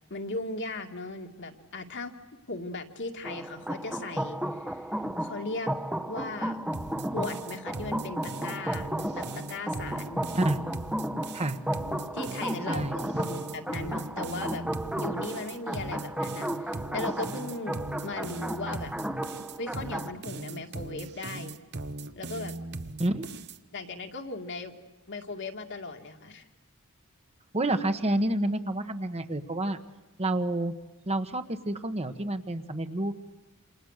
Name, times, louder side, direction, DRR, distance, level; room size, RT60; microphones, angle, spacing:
voice 1, 0.1-2.1 2.5-4.9 5.2-5.7 6.0-6.7 7.1-9.2 9.5-10.2 12.1-14.6 15.0-17.8 18.0-18.9 19.6-21.5 22.2-22.6 23.7-24.7 25.1-26.4, left 3 dB, 55° left, 4 dB, 2.3 m, -37 dB
sound 1, 3.2-20.1, right 1 dB, 5° right, 1.1 m, -34 dB
sound 2, 6.7-23.6, right 2 dB, 50° right, 1.2 m, -39 dB
voice 2, 27.5-29.8 30.2-30.7 31.1-33.1, right 1 dB, 30° right, 8 dB, 1.4 m, -29 dB
28.5 x 28.0 x 6.6 m, 1.1 s
head